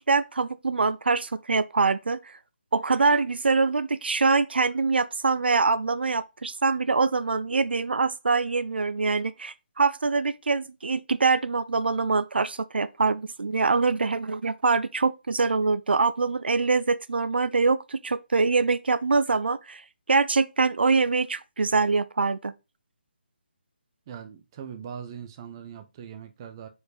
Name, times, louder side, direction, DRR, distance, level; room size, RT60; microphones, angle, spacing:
voice 1, 0.1-2.4 2.7-19.8 20.1-22.5, right 4 dB, 80° right, 0.5 m, -24 dB
voice 2, 24.1-26.7, right 8 dB, 25° right, 0.7 m, -40 dB
4.8 x 4.3 x 4.8 m
hypercardioid pair, 160°, 5 cm